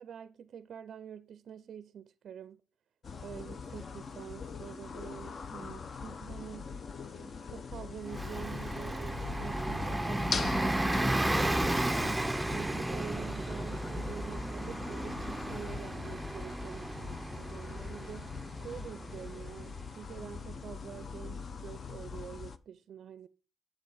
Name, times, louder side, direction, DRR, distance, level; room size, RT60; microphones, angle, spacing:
voice 1, 0.0-2.6 3.2-6.7 7.1-18.3 18.6-23.3, right 8 dB, 60° right, 0.4 m, -46 dB
sound 1, 3.0-22.6, left 5 dB, 45° left, 0.7 m, -42 dB
Bus, 8.1-20.4, right 1 dB, 10° right, 0.5 m, -34 dB
sound 2, 12.8-19.3, left 3 dB, 80° left, 1.9 m, -61 dB
7.7 x 6.9 x 4.8 m
cardioid pair, 90°, 0 cm